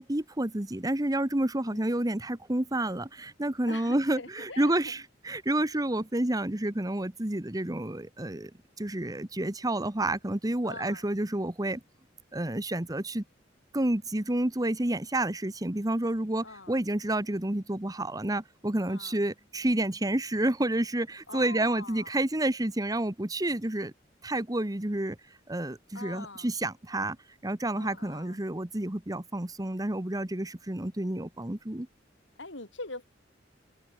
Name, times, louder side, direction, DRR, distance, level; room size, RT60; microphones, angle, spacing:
voice 1, 0.0-8.5 8.8-11.8 12.3-13.2 13.7-23.9 24.2-25.2 25.5-27.2 27.4-31.9, right 1 dB, 20° right, 1.2 m, -29 dB
voice 2, 1.6-2.0 3.7-5.0 5.3-5.4 10.6-11.1 16.4-16.8 18.9-19.2 21.3-22.2 25.9-26.5 27.7-28.4 32.4-33.1, left 3 dB, 80° left, 5.9 m, -44 dB
open air
head